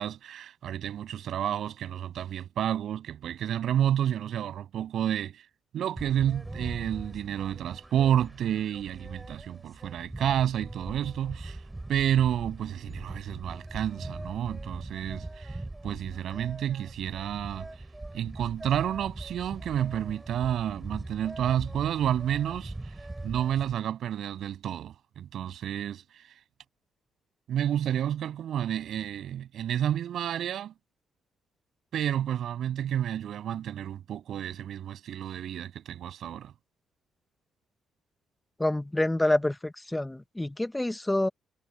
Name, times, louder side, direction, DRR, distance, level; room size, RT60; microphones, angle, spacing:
voice 1, 0.0-5.4 5.7-11.6 11.9-15.6 15.8-17.7 18.1-22.9 23.2-26.2 27.5-30.7 31.9-36.5, right 10 dB, 70° right, 7.2 m, -30 dB
sound 1, 6.0-23.7, right 2 dB, 15° right, 5.6 m, -41 dB
voice 2, 38.6-41.3, left 1 dB, 10° left, 0.9 m, -27 dB
supercardioid pair, 75°, 0 cm